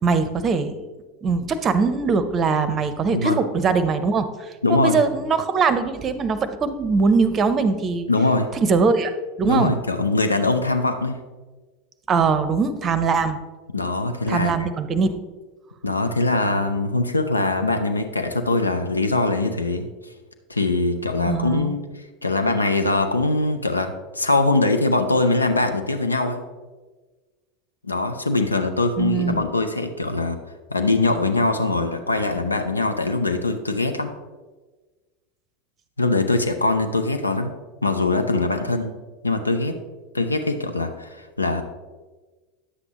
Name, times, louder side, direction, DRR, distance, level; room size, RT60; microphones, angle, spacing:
voice 1, 0.0-0.7 1.2-8.1 8.5-9.1 9.4-9.7 12.1-13.4 14.3-15.2 21.3-21.7 29.0-29.4, right 4 dB, 30° right, 12 dB, 0.7 m, -21 dB
voice 2, 3.1-3.4 4.6-5.0 8.1-8.5 9.5-11.2 13.7-14.5 15.8-19.9 20.5-21.8 22.2-26.4 27.8-30.4 30.7-34.1 36.0-37.5 37.8-38.9 39.2-39.7 40.1-41.6, left 2 dB, 80° left, 7 dB, 0.5 m, -22 dB
9.7 x 7.8 x 3.0 m, 1.3 s
figure-of-eight pair, 80°, 0 cm